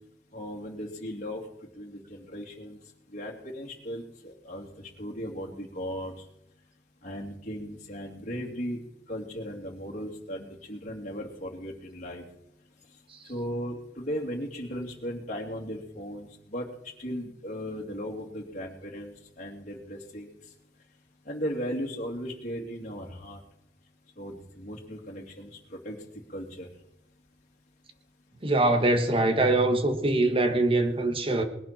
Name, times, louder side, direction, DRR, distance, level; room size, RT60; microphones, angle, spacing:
voice 1, 0.3-1.4 1.7-2.8 3.1-6.2 7.0-8.8 9.1-12.2 13.3-16.7 17.0-20.4 21.2-23.4 24.2-26.0 26.3-26.7, equal, 45° left, 2.5 m, -37 dB
voice 2, 28.4-31.4, right 2 dB, 30° right, 1.5 m, -23 dB
20.0 x 11.0 x 4.4 m
head